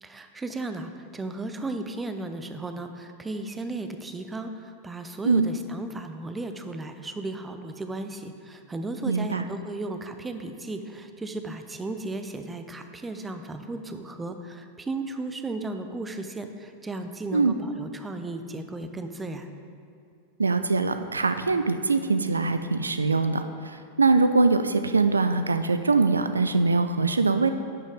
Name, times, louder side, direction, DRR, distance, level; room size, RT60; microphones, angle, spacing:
voice 1, 0.0-19.5, right 2 dB, 10° right, 7 dB, 0.5 m, -35 dB
voice 2, 9.1-9.4 17.3-17.6 20.4-23.4 24.0-27.5, right 3 dB, 75° right, 9 dB, 0.3 m, -22 dB
10.0 x 6.2 x 3.6 m, 2.4 s
figure-of-eight pair, 90°, 0 cm